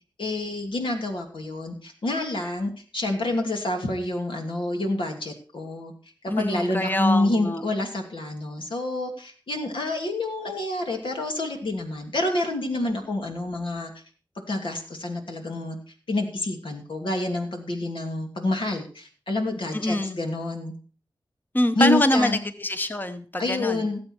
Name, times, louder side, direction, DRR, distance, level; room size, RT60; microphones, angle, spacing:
voice 1, 0.2-5.9 6.4-13.9 14.4-15.8 16.1-20.7 21.7-22.4 23.4-24.0, left 2 dB, 85° left, 2 dB, 2.7 m, -28 dB
voice 2, 6.3-7.6 19.7-20.2 21.5-23.9, left 1 dB, 25° left, 9 dB, 0.9 m, -25 dB
17.5 x 7.8 x 4.5 m, 0.39 s
wide cardioid pair, 60°, 8 cm